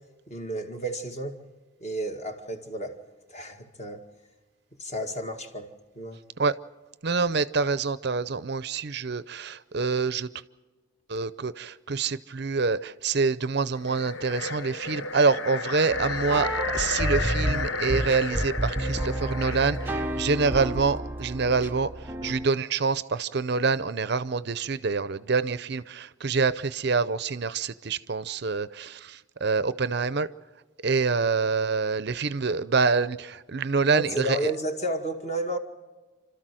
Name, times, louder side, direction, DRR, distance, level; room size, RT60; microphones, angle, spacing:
voice 1, 0.3-1.4 1.8-3.0 3.3-4.0 4.8-5.7 6.0-6.2 22.2-22.3 33.9-35.6, right 1 dB, 35° left, 2.0 m, -32 dB
voice 2, 7.0-10.3 11.1-30.3 30.8-34.5, right 4 dB, 50° right, 0.6 m, -26 dB
sound 1, 13.7-20.2, left 4 dB, 70° left, 0.8 m, -33 dB
sound 2, 15.9-22.5, right 1 dB, 10° right, 0.6 m, -31 dB
29.5 x 13.0 x 7.7 m
head